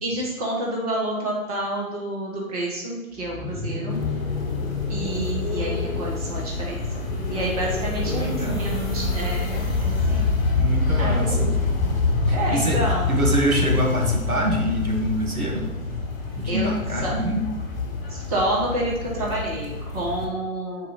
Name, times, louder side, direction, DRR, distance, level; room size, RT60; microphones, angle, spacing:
voice 1, 0.0-4.0 4.9-6.8 7.3-10.4 11.0-12.0 12.3-13.2 16.5-17.1 18.1-20.9, right 1 dB, 25° right, -3 dB, 1.4 m, -29 dB
sound 1, 3.1-15.1 16.3-19.9, left 3 dB, 15° left, 0.7 m, -36 dB
sound 2, 3.9-20.2, left 3 dB, 30° left, 1.4 m, -26 dB
voice 2, 8.0-8.7 10.6-11.5 12.3-12.8 13.1-15.7 16.4-17.4, equal, 80° right, 0 dB, 1.8 m, -25 dB
4.8 x 4.6 x 5.5 m, 1.1 s
figure-of-eight pair, 140°, 43 cm